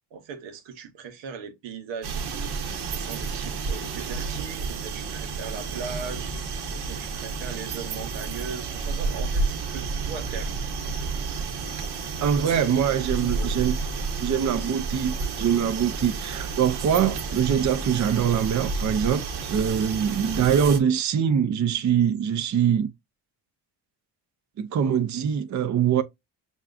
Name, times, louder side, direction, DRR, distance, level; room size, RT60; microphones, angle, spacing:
voice 1, 0.1-6.3 6.8-10.6 13.2-13.5, right 6 dB, 90° right, 1.1 m, -39 dB
sound 1, 2.0-20.8, right 4 dB, 65° right, 1.1 m, -31 dB
voice 2, 12.2-13.8 14.2-22.9 24.6-26.0, right 8 dB, 40° right, 0.7 m, -23 dB
6.2 x 2.4 x 2.5 m
cardioid pair, 85°, 43 cm